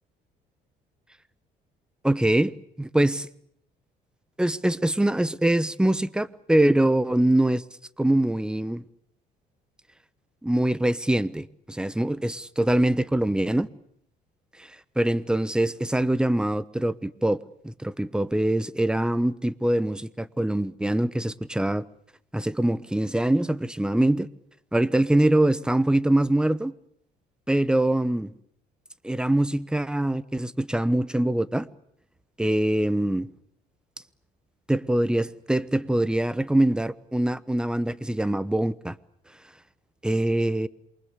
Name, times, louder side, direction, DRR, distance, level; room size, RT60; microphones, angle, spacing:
voice 1, 2.0-3.3 4.4-7.6 8.0-8.8 10.4-13.7 14.6-14.7 15.0-17.4 17.6-21.8 22.3-24.3 24.7-26.7 27.5-28.3 29.0-31.7 32.4-33.3 34.7-38.9 40.0-40.7, right 1 dB, 5° right, 1.0 m, -23 dB
27.5 x 24.0 x 8.4 m
cardioid pair, 110°, 17 cm